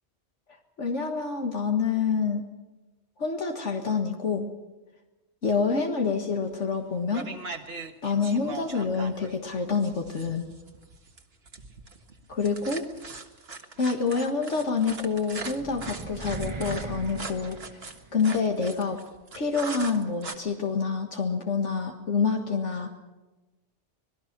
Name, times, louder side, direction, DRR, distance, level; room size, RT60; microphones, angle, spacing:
voice 1, 0.8-2.4 3.2-4.5 5.4-7.3 8.0-10.5 12.3-12.8 13.8-17.6 18.1-19.0 19.3-22.9, left 5 dB, 75° left, 3 dB, 1.9 m, -27 dB
sound 1, 6.5-6.8 7.1-20.3, right 3 dB, 55° right, 1.8 m, -40 dB
sound 2, 15.0-18.4, right 3 dB, 25° right, 1.1 m, -39 dB
26.0 x 19.5 x 6.0 m, 1.1 s
omnidirectional pair, 1.2 m